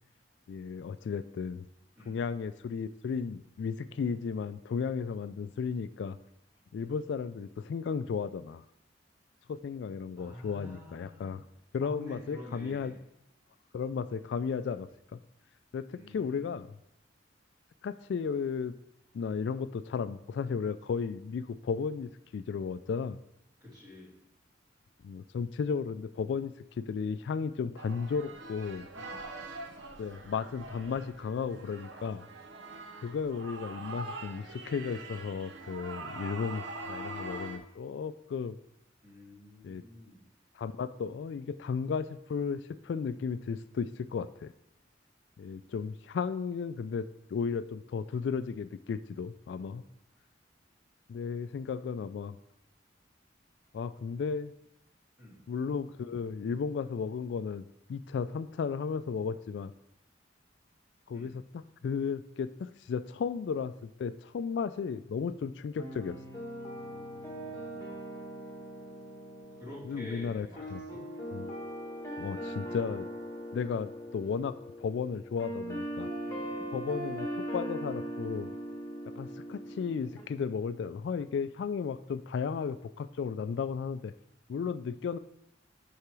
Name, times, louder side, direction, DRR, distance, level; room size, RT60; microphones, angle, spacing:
voice 1, 0.5-1.7 2.1-6.2 6.7-8.6 9.5-11.4 11.7-13.0 13.7-15.2 15.7-16.7 17.8-18.8 19.1-23.2 25.0-28.9 30.0-32.2 33.0-38.6 39.6-39.9 40.6-44.5 45.4-49.8 51.1-52.4 53.7-54.5 55.5-59.7 61.1-66.2 69.8-70.8 71.3-71.6 72.2-73.1 73.5-76.1 76.7-78.5 79.2-84.1 84.5-85.2, left 6 dB, 70° left, 13 dB, 0.3 m, -34 dB
voice 2, 10.2-11.4 11.8-13.0 15.9-16.5 23.6-24.1 28.9-29.3 39.0-40.2 55.2-55.4 61.1-61.3 66.7-67.9 69.6-70.6 70.9-71.1 76.2-76.8, left 1 dB, 20° right, -6 dB, 2.8 m, -49 dB
sound 1, 27.8-37.6, right 2 dB, 75° right, 0.8 m, -43 dB
sound 2, 65.8-80.2, equal, 15° left, 1.6 m, -40 dB
6.7 x 5.7 x 4.7 m, 0.81 s
head